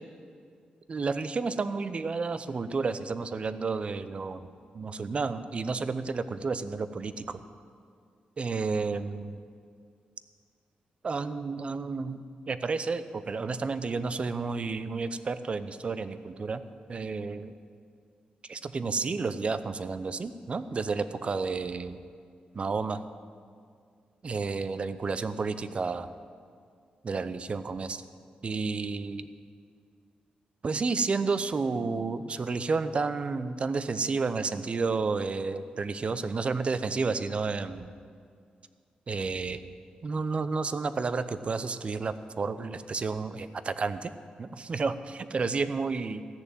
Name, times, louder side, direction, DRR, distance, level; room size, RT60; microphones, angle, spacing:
voice 1, 0.9-7.4 8.4-9.4 11.0-16.6 16.9-17.5 18.5-22.0 22.5-23.0 24.2-26.1 27.0-28.0 28.4-29.3 30.6-37.9 39.1-39.6 40.0-44.1 44.4-46.2, right 4 dB, 40° right, 12 dB, 0.6 m, -31 dB
14.5 x 6.8 x 9.1 m, 2.2 s
cardioid pair, 95°, 3 cm